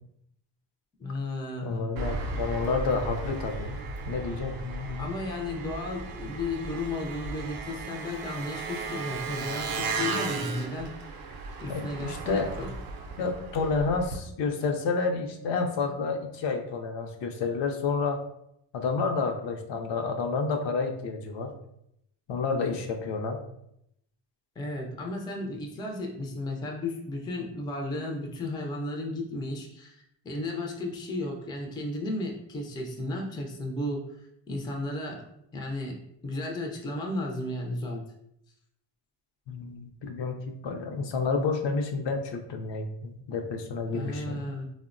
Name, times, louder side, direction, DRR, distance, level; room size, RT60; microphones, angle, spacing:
voice 1, 1.0-1.9 5.0-10.9 11.6-12.7 24.6-35.2 35.5-38.1 43.9-44.6, left 2 dB, 10° left, 1 dB, 0.3 m, -34 dB
voice 2, 1.6-3.8 4.1-5.1 11.7-12.6 13.2-18.2 18.7-21.5 22.3-23.4 39.5-44.4, left 4 dB, 65° left, 4 dB, 0.5 m, -30 dB
Engine, 2.0-14.2, right 4 dB, 50° right, 0.5 m, -35 dB
3.3 x 2.1 x 2.5 m, 0.77 s
cardioid pair, 105°, 46 cm